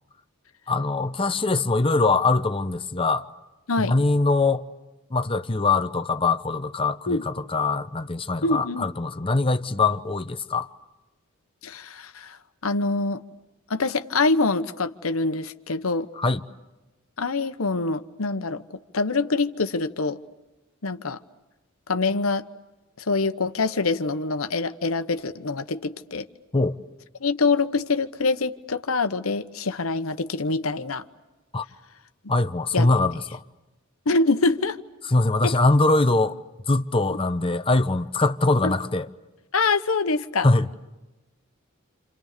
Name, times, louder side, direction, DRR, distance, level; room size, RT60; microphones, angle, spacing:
voice 1, 0.7-3.3 3.8-4.7 5.1-10.7 16.2-16.4 26.5-26.8 31.5-31.6 32.3-33.4 35.1-36.4 36.7-39.1 40.4-40.7, left 3 dB, 25° left, 1.0 m, -22 dB
voice 2, 8.4-8.9 11.6-12.4 12.6-13.2 13.7-16.1 17.2-18.6 18.9-20.2 20.8-21.2 21.9-22.4 23.1-26.3 27.2-31.0 32.7-32.9 34.1-34.8 35.4-35.6 38.6-38.7 39.5-40.5, left 3 dB, 90° left, 1.1 m, -25 dB
28.5 x 28.0 x 6.7 m
head